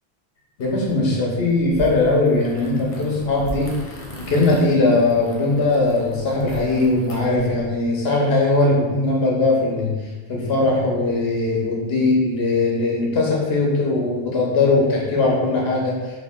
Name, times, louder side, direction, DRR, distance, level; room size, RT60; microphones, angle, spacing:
voice 1, 0.6-16.2, left 2 dB, 70° left, -2 dB, 1.1 m, -20 dB
sound 1, 0.6-7.8, equal, 40° left, 0.7 m, -38 dB
3.4 x 2.7 x 3.6 m, 1.3 s
omnidirectional pair, 1.1 m